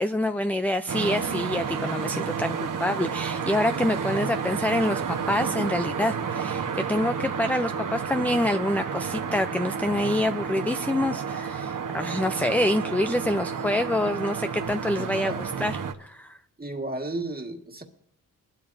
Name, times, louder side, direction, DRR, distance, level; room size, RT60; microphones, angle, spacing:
voice 1, 0.0-16.4, left 1 dB, 5° left, 0.4 m, -26 dB
sound 1, 0.9-15.9, right 6 dB, 55° right, 1.2 m, -31 dB
voice 2, 15.0-15.5 16.6-17.8, right 2 dB, 25° right, 1.8 m, -34 dB
21.5 x 12.5 x 2.7 m
cardioid pair, 80°, 37 cm